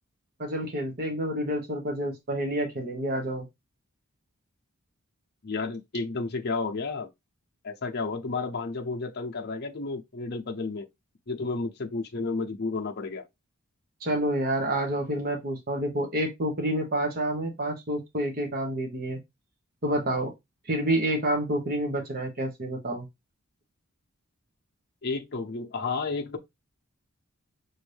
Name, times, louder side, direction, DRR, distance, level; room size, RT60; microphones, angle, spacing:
voice 1, 0.4-3.5 14.0-19.2 19.8-20.3 20.7-23.1, right 1 dB, 45° right, 1.1 m, -28 dB
voice 2, 5.4-7.1 7.6-10.9 11.3-13.3 25.0-26.4, left 3 dB, 50° left, 0.7 m, -32 dB
6.1 x 2.6 x 3.3 m
head